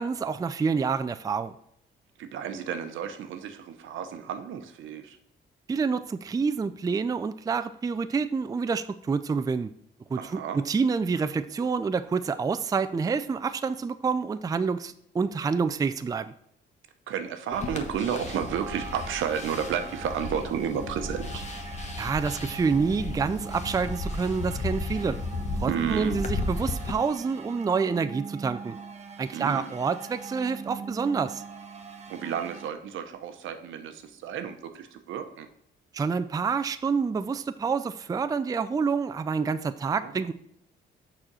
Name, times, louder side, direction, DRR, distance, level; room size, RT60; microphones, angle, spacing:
voice 1, 0.0-1.5 5.7-9.7 10.1-16.3 22.0-25.2 25.6-28.8 29.2-31.4 35.9-40.3, right 5 dB, 20° right, 11 dB, 0.4 m, -28 dB
voice 2, 2.2-5.2 10.2-10.6 17.1-21.4 25.7-26.2 29.3-29.7 32.1-35.5 40.0-40.1, right 8 dB, 80° right, 8 dB, 0.9 m, -32 dB
sound 1, 17.5-26.9, left 2 dB, 35° left, 1.0 m, -35 dB
sound 2, 17.5-32.7, right 5 dB, 35° right, 0.9 m, -42 dB
6.4 x 4.3 x 6.2 m, 0.71 s
cardioid pair, 90°, 20 cm